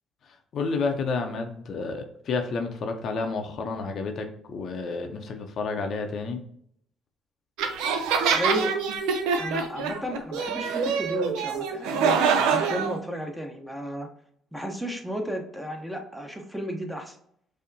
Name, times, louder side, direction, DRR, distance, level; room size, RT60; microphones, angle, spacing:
voice 1, 0.5-6.4, left 4 dB, 60° left, 5 dB, 0.6 m, -30 dB
sound 1, 7.6-13.0, right 6 dB, 75° right, 0.4 m, -25 dB
voice 2, 8.3-8.7 9.4-14.1 14.5-17.2, right 1 dB, ahead, 3 dB, 0.9 m, -33 dB
5.3 x 2.1 x 2.7 m, 0.67 s
hypercardioid pair, 60°, 0 cm